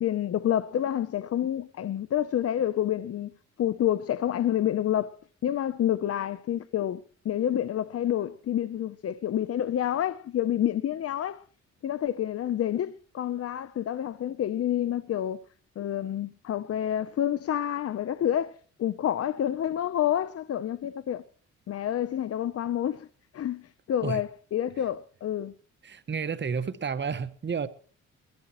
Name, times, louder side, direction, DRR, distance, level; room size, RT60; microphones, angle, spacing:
voice 1, 0.0-3.3 3.6-5.2 5.4-11.4 11.8-15.4 15.8-21.2 21.7-23.1 23.3-23.6 23.9-25.5, left 11 dB, 50° left, 0.7 m, -28 dB
voice 2, 25.8-27.7, right 6 dB, 40° right, 1.2 m, -31 dB
22.5 x 15.0 x 3.0 m
cardioid pair, 90°, 30 cm